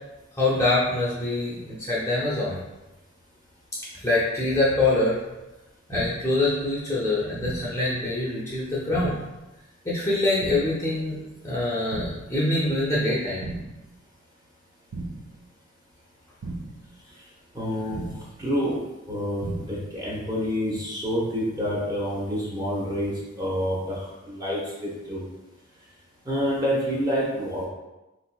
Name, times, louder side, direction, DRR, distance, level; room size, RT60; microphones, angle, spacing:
voice 1, 0.4-2.6 3.9-5.2 5.9-9.2 9.8-13.4, left 2 dB, 15° left, -8 dB, 0.6 m, -25 dB
sound 1, 5.9-6.4 7.4-7.9 8.9-9.4 10.4-10.9 11.9-12.4 13.4-13.9 14.9-15.4 16.4-16.9 17.9-18.4 19.4-19.9, right 2 dB, 85° right, 0.5 m, -36 dB
voice 2, 17.5-18.1 18.4-18.8 19.1-25.2 26.2-27.7, equal, 20° right, -5 dB, 0.9 m, -28 dB
3.7 x 2.9 x 2.2 m, 1.0 s
head